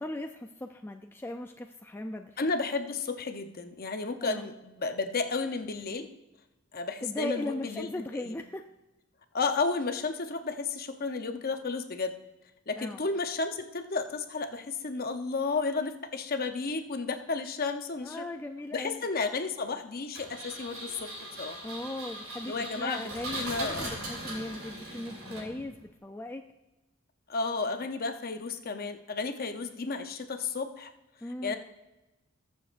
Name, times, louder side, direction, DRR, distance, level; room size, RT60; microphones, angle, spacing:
voice 1, 0.0-2.4 4.2-4.5 7.0-8.7 12.8-13.0 18.0-19.0 21.6-26.4 31.2-31.5, left 1 dB, 10° left, 4 dB, 0.3 m, -38 dB
voice 2, 2.4-6.1 6.7-8.3 9.3-12.1 12.7-18.3 18.7-21.1 21.4-21.6 22.4-23.9 27.3-30.9 31.4-31.6, left 4 dB, 45° left, 7 dB, 0.7 m, -32 dB
Engine, 20.1-25.8, right 1 dB, 80° right, 3.0 m, -39 dB
20.5 x 7.1 x 2.5 m, 1.0 s
head